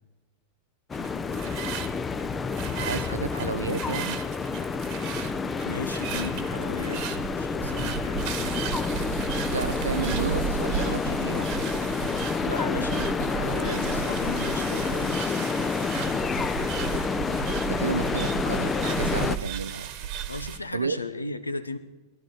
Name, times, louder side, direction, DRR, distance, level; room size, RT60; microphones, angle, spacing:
sound 1, 0.9-19.4, left 5 dB, 20° left, 0.7 m, -29 dB
sound 2, 0.9-20.6, right 9 dB, 45° right, 1.3 m, -35 dB
voice 1, 2.7-4.2 9.5-11.5 17.7-19.9 20.7-21.0, right 5 dB, 75° right, 0.5 m, -32 dB
voice 2, 5.6-8.2 12.4-15.4 20.3-21.8, left 3 dB, 80° left, 0.9 m, -36 dB
21.5 x 11.5 x 4.9 m
figure-of-eight pair, 90°, 0 cm